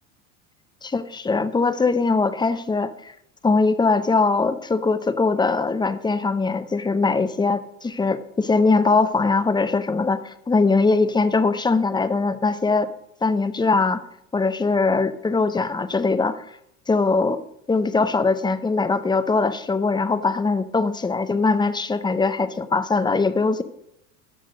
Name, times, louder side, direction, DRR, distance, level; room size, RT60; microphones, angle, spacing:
voice 1, 0.8-3.1 3.4-12.9 13.2-14.0 14.3-16.5 16.9-17.4 17.7-23.6, left 3 dB, 10° left, 12 dB, 0.7 m, -21 dB
14.5 x 6.3 x 5.2 m, 0.79 s
hypercardioid pair, 90°, 40 cm